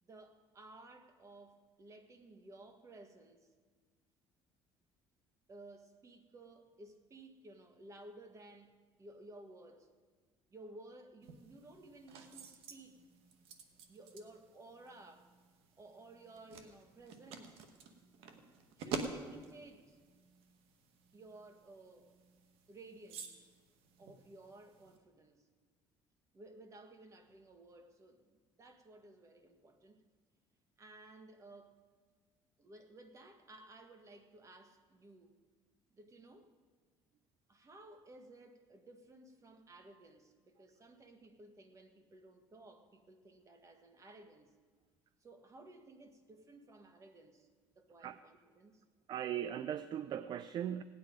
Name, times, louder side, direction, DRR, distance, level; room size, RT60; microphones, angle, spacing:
voice 1, 0.0-3.5 5.5-9.9 10.5-13.0 13.9-15.3 15.8-17.6 18.8-20.0 21.1-22.1 22.7-23.4 24.0-25.5 26.3-30.0 30.8-31.8 32.6-35.3 35.9-36.5 37.5-44.5 45.2-47.5 47.7-48.8, right 2 dB, 30° right, 7 dB, 1.6 m, -56 dB
sound 1, 11.2-25.0, right 5 dB, 80° right, 1.3 m, -49 dB
voice 2, 49.1-50.8, right 10 dB, 45° right, 14 dB, 0.4 m, -38 dB
17.0 x 9.6 x 5.1 m, 1.5 s
cardioid pair, 110°, 10 cm